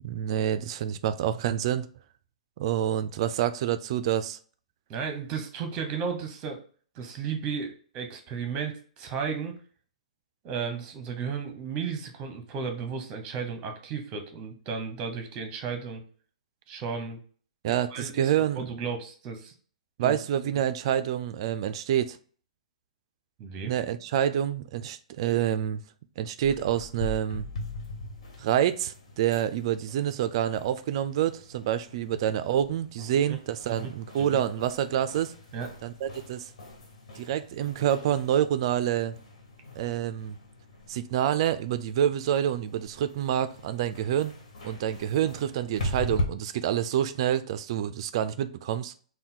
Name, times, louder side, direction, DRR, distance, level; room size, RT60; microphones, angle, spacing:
voice 1, 0.0-1.9 2.6-4.4 17.6-18.7 20.0-22.2 23.7-25.8 26.2-27.5 28.4-35.3 35.8-36.5 37.1-39.1 39.8-40.4 40.9-44.3 44.6-48.9, right 10 dB, 50° right, 0.3 m, -27 dB
voice 2, 4.9-6.6 6.9-9.6 10.4-16.0 16.7-17.2 17.9-19.5 20.0-20.2 23.4-23.7 33.3-33.4 33.7-34.4 35.5-35.7, right 6 dB, 30° right, 0.8 m, -34 dB
sound 1, 26.4-46.2, left 1 dB, 65° left, 1.3 m, -40 dB
3.5 x 2.2 x 4.2 m
hypercardioid pair, 140°, 4 cm